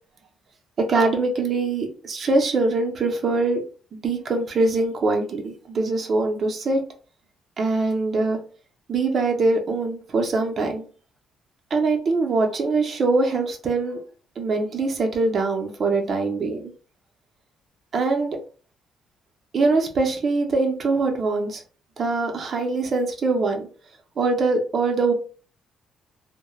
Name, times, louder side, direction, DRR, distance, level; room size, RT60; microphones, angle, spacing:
voice 1, 0.9-3.6 3.9-6.8 7.6-8.4 8.9-10.9 11.7-14.0 14.4-16.7 17.9-18.4 19.5-21.6 22.0-23.7 24.2-25.1, right 3 dB, 40° right, 3 dB, 0.6 m, -23 dB
3.0 x 2.1 x 2.3 m, 0.38 s
cardioid pair, 120°, 0 cm